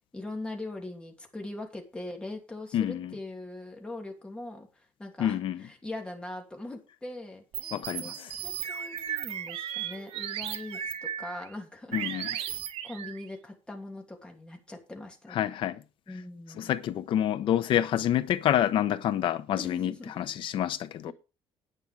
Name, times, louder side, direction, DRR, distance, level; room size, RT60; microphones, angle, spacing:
voice 1, 0.1-7.7 8.0-8.1 8.4-10.8 11.2-12.6 12.8-15.4 16.1-16.7 19.5-20.3 21.1-21.2, left 2 dB, 10° left, 2.8 m, -41 dB
voice 2, 2.7-3.1 5.2-5.6 7.7-8.3 11.9-12.3 15.3-15.8 16.6-21.1, left 11 dB, 55° left, 0.9 m, -28 dB
sound 1, 7.5-11.5 11.9-13.2, right 10 dB, 75° right, 1.6 m, -36 dB
10.0 x 9.3 x 4.9 m
cardioid pair, 160°, 10 cm